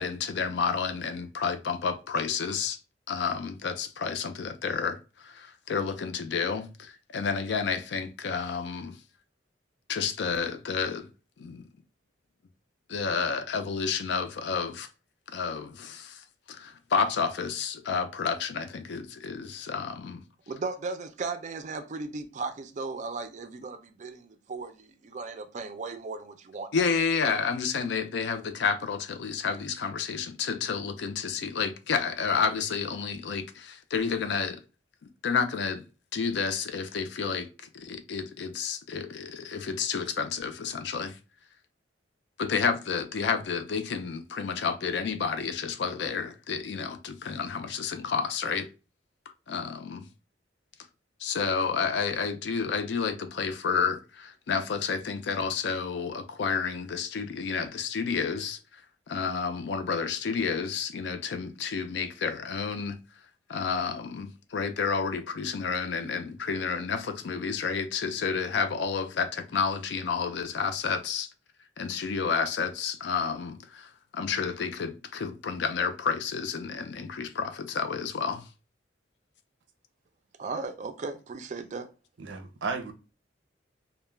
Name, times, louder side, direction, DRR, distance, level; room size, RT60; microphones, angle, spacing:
voice 1, 0.0-2.8 3.1-9.0 9.9-11.1 11.4-11.7 12.9-14.9 15.3-20.2 26.7-34.6 35.0-35.8 36.1-41.2 42.4-48.7 49.5-50.1 51.2-58.8 59.1-63.0 63.5-71.3 71.8-78.5, left 5 dB, 65° left, 0.4 m, -30 dB
voice 2, 20.5-26.7 80.4-81.9, right 4 dB, 40° right, 0.4 m, -36 dB
voice 3, 82.2-82.9, right 4 dB, 85° right, 0.6 m, -33 dB
2.2 x 2.1 x 3.2 m
head